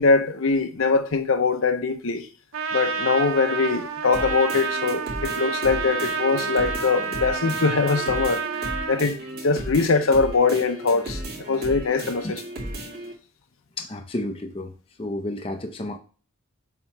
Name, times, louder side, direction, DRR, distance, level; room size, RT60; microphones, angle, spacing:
voice 1, 0.0-2.3 2.7-12.4, left 4 dB, 70° left, 0.7 m, -22 dB
Trumpet, 2.5-9.0, right 5 dB, 70° right, 0.6 m, -29 dB
sound 1, 4.1-13.1, right 1 dB, 45° right, 2.2 m, -35 dB
voice 2, 13.8-14.7 15.0-16.0, left 1 dB, 25° left, 0.6 m, -31 dB
7.3 x 3.0 x 4.4 m
head